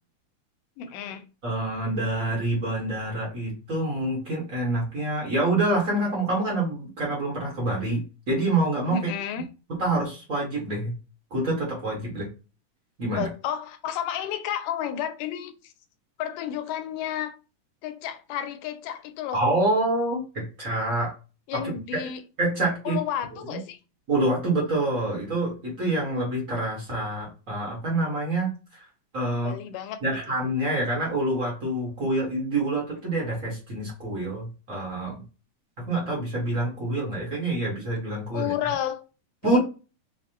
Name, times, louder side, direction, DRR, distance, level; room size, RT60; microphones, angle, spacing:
voice 1, 0.8-1.2 8.9-9.5 13.1-15.7 16.2-17.3 17.8-19.4 21.5-22.2 22.9-23.8 29.4-30.0 38.3-39.0 39.4-39.6, left 10 dB, 85° left, 2.2 m, -31 dB
voice 2, 1.4-9.1 9.7-10.9 11.3-12.3 13.0-13.3 19.3-21.1 21.5-21.6 22.0-22.1 22.4-23.0 23.4-23.6 24.1-28.9 29.1-29.6 30.0-35.2 35.8-38.5 39.4-39.6, right 2 dB, 50° right, 1.0 m, -27 dB
5.7 x 2.1 x 2.8 m
omnidirectional pair, 3.7 m